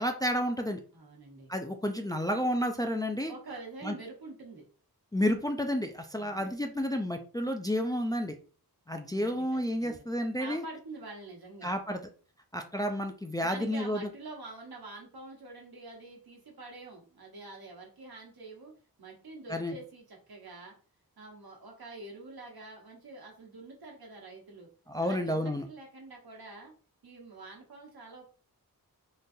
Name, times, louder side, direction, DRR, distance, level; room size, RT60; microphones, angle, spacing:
voice 1, 0.0-0.8 1.5-3.3 3.8-3.9 5.1-8.3 8.9-10.6 11.6-12.0 12.5-14.1 19.5-19.7 24.9-25.7, equal, 10° left, 5 dB, 0.4 m, -31 dB
voice 2, 0.9-1.5 3.3-4.6 6.2-6.5 9.0-10.0 10.4-11.7 13.4-18.7 19.0-20.7 21.2-24.7 25.0-26.7 27.0-28.3, right 3 dB, 75° right, 0 dB, 1.1 m, -46 dB
3.8 x 2.4 x 2.6 m, 0.39 s
wide cardioid pair, 60°, 37 cm